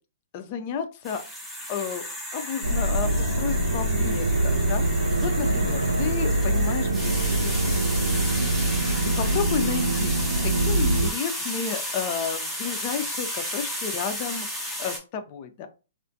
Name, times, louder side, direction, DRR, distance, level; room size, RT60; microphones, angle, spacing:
voice 1, 0.3-1.2 1.7-2.1 2.3-7.7 8.8-10.1 10.4-15.7, left 7 dB, 40° left, 8 dB, 0.5 m, -32 dB
sound 1, 1.0-15.0, equal, ahead, 0.6 m, -33 dB
sound 2, 2.6-11.1, right 1 dB, 90° right, 0.4 m, -24 dB
2.3 x 2.1 x 2.6 m, 0.32 s
hypercardioid pair, 120°, 0 cm